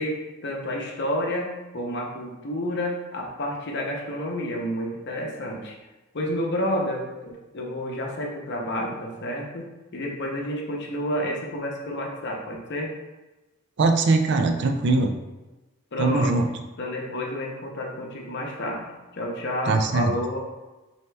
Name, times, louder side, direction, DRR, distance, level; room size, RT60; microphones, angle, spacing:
voice 1, 0.0-5.7 6.1-12.9 15.9-16.3 16.8-18.9 19.1-20.4, left 1 dB, 55° left, 0 dB, 0.7 m, -30 dB
voice 2, 13.8-15.1 16.0-16.5 19.7-20.1, right 3 dB, 55° right, 5 dB, 0.4 m, -21 dB
4.2 x 2.7 x 3.3 m, 1.1 s
head